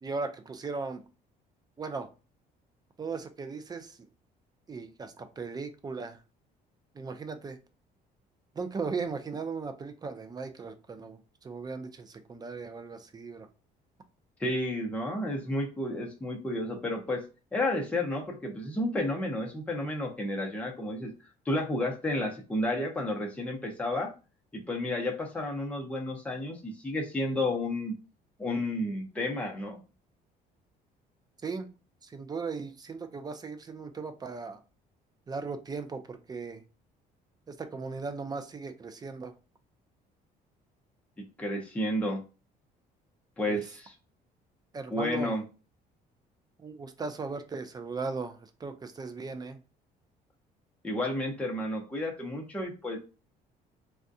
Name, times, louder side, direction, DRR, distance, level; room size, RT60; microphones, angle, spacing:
voice 1, 0.0-1.0 1.8-2.1 3.0-4.1 4.7-6.2 6.9-7.6 8.6-13.5 31.4-31.7 32.0-34.6 35.3-36.6 37.5-39.3 43.5-43.6 44.7-45.3 46.6-49.6, right 4 dB, 25° right, 9 dB, 0.5 m, -37 dB
voice 2, 14.4-17.2 17.5-21.1 21.5-24.1 24.5-28.0 28.4-29.8 41.2-42.2 43.4-43.9 44.9-45.4 50.8-53.0, left 1 dB, 10° left, 0 dB, 0.7 m, -31 dB
3.5 x 2.3 x 2.6 m, 0.32 s
cardioid pair, 110°, 17 cm